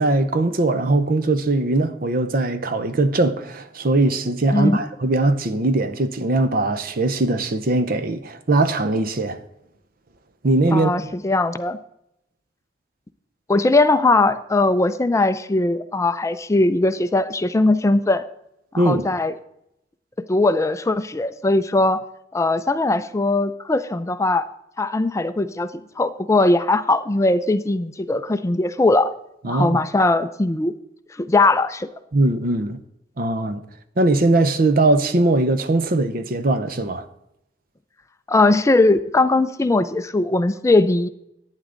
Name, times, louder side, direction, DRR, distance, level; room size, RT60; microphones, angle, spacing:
voice 1, 0.0-9.4 10.4-10.9 18.8-19.0 29.4-29.8 32.1-32.8 33.2-33.6 34.0-37.1, right 2 dB, 55° right, 0.7 m, -20 dB
voice 2, 10.7-11.8 13.5-18.2 18.7-19.3 20.3-22.1 22.3-24.5 24.8-25.7 26.0-29.1 29.4-30.7 31.2-31.9 38.3-41.1, left 2 dB, 15° left, 0.4 m, -19 dB
11.5 x 9.1 x 3.8 m
head